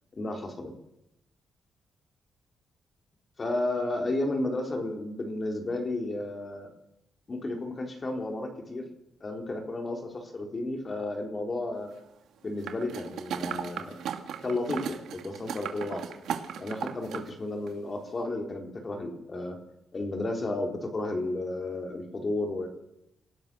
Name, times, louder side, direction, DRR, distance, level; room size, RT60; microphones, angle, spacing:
voice 1, 0.1-0.7 3.4-6.7 7.3-8.9 9.2-11.9 12.4-14.0 14.4-16.2 16.6-19.6 19.9-22.7, left 2 dB, 25° left, 3 dB, 4.2 m, -32 dB
sound 1, 12.6-17.3 17.7-17.8, right 9 dB, 90° right, 2.4 m, -36 dB
27.5 x 18.0 x 6.5 m, 0.81 s
wide cardioid pair, 155°, 0 cm